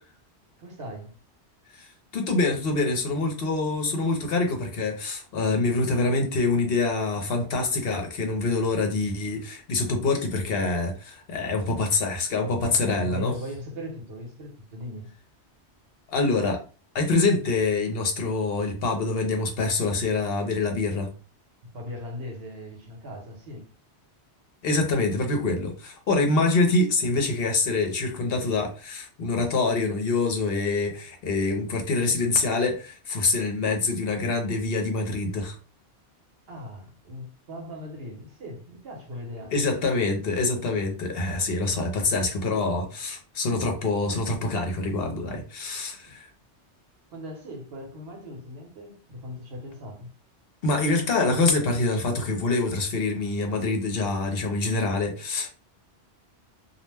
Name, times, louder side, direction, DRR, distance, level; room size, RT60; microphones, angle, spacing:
voice 1, 0.6-1.2 11.4-11.8 12.6-15.1 21.7-23.6 36.5-39.6 46.0-46.1 47.1-50.1, left 1 dB, 65° right, 1.0 m, -39 dB
voice 2, 1.7-13.3 16.1-16.6 16.9-21.1 24.6-35.6 39.5-46.3 50.6-55.5, left 3 dB, 60° left, 0.8 m, -25 dB
2.4 x 2.1 x 3.2 m
omnidirectional pair, 1.2 m